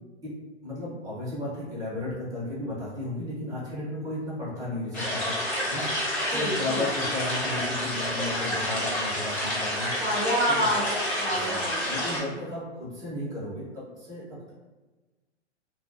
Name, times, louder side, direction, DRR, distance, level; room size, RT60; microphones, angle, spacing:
voice 1, 0.2-5.4 5.7-5.9 6.3-9.9 11.4-11.6 11.9-14.5, left 1 dB, 10° right, -8 dB, 0.8 m, -34 dB
sound 1, 4.9-12.2, left 1 dB, 25° left, 0.8 m, -29 dB
voice 2, 6.3-6.8 10.0-10.8 11.1-12.1 12.4-12.5, equal, 5° left, -8 dB, 0.4 m, -28 dB
2.3 x 2.1 x 2.5 m, 1.2 s
figure-of-eight pair, 115°, 35 cm